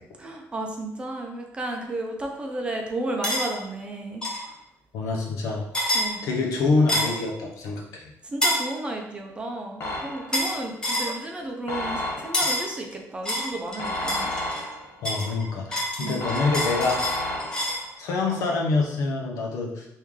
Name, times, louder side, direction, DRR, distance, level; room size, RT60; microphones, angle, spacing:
voice 1, 0.2-4.2 5.9-6.2 8.2-14.3 16.0-16.2, right 1 dB, 20° right, 2 dB, 0.5 m, -33 dB
sound 1, 3.2-3.5 4.2-4.4 5.7-6.1 6.9-7.2 8.4-8.7 10.3-10.6 10.8-11.1 12.3-12.7 13.3-14.7 15.1-17.8, equal, 15° left, 0.8 m, -27 dB
voice 2, 4.9-5.6 6.0-8.1 11.8-11.9 15.0-17.0 18.0-19.9, left 3 dB, 80° left, 0 dB, 0.7 m, -26 dB
sound 2, 9.8-10.5 11.7-12.6 13.8-15.0 16.2-17.9, left 1 dB, 45° left, 0.9 m, -31 dB
3.1 x 2.7 x 3.6 m, 0.84 s
cardioid pair, 130°, 6 cm